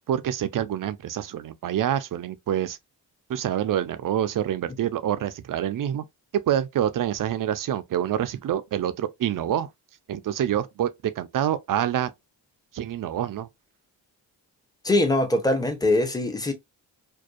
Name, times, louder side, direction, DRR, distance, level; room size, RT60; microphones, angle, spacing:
voice 1, 0.1-2.8 3.3-6.0 6.3-9.7 10.1-12.1 12.7-13.5, right 10 dB, 45° right, 0.5 m, -26 dB
voice 2, 14.8-16.5, left 2 dB, 10° left, 0.8 m, -22 dB
2.6 x 2.3 x 2.3 m
supercardioid pair, 50°, 45 cm